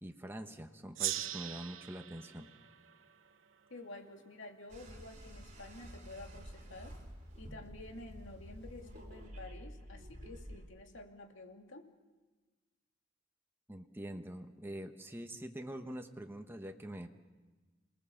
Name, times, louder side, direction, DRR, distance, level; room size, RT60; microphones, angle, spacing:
voice 1, 0.0-2.5 13.7-17.2, right 1 dB, 10° right, 5 dB, 1.0 m, -45 dB
Gong, 0.9-4.1, right 12 dB, 75° right, 0.7 m, -41 dB
voice 2, 3.7-7.0 7.4-11.9, left 2 dB, 70° left, 3 dB, 2.6 m, -50 dB
sound 1, 4.7-10.6, equal, 40° right, 3.9 m, -50 dB
28.0 x 19.5 x 7.2 m, 1.3 s
head